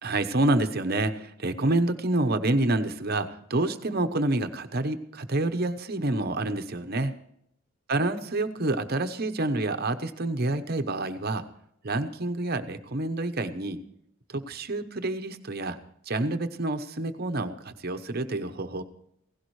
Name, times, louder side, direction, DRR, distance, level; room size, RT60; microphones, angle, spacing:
voice 1, 0.0-7.2 7.9-11.4 11.8-13.8 14.3-15.8 16.1-18.8, right 2 dB, 45° right, 9 dB, 0.9 m, -28 dB
16.5 x 16.0 x 3.2 m, 0.72 s
head